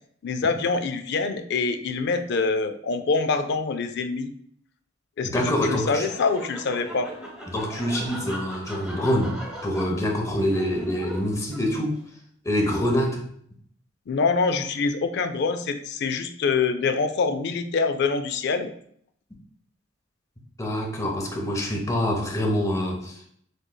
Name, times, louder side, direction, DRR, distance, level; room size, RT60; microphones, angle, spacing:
voice 1, 0.2-4.3 5.2-7.1 14.1-18.7, left 4 dB, 55° left, 9 dB, 0.4 m, -25 dB
voice 2, 5.2-6.1 7.5-11.9 12.4-13.2 20.6-23.1, equal, 15° left, 0 dB, 0.8 m, -25 dB
Laughter, 5.4-12.0, equal, 5° right, 1.1 m, -39 dB
6.4 x 3.1 x 2.2 m, 0.66 s
head